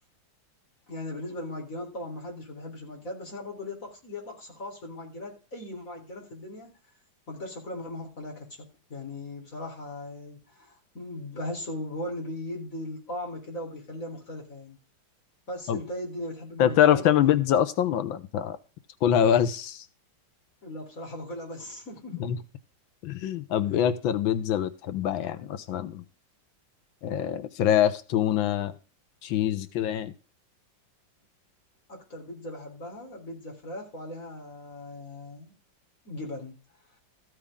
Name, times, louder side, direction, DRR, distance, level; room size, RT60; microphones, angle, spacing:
voice 1, 0.9-6.7 7.3-14.8 15.5-17.6 20.6-22.3 31.9-35.5 36.0-36.6, left 1 dB, 45° left, 0 dB, 4.4 m, -38 dB
voice 2, 16.6-18.6 19.0-19.8 22.2-22.4 23.0-26.0 27.0-28.7 29.2-30.1, left 10 dB, 90° left, 13 dB, 1.7 m, -24 dB
14.5 x 8.6 x 3.7 m, 0.35 s
omnidirectional pair, 2.1 m